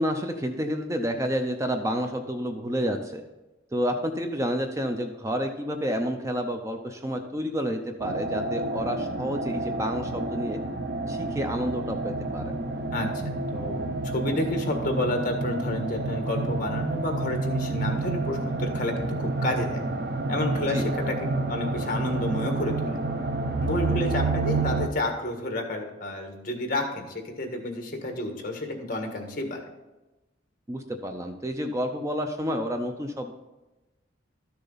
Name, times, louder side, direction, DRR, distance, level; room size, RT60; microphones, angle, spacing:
voice 1, 0.0-3.2 3.7-10.6 11.1-12.4 20.7-20.9 30.7-33.3, equal, 15° right, 5 dB, 0.5 m, -29 dB
sound 1, 8.0-24.9, right 3 dB, 55° right, 0.7 m, -29 dB
voice 2, 13.5-19.8 20.3-21.2 21.5-23.0 23.6-29.6, left 1 dB, 45° left, 3 dB, 1.6 m, -30 dB
12.5 x 6.7 x 4.0 m, 1.0 s
head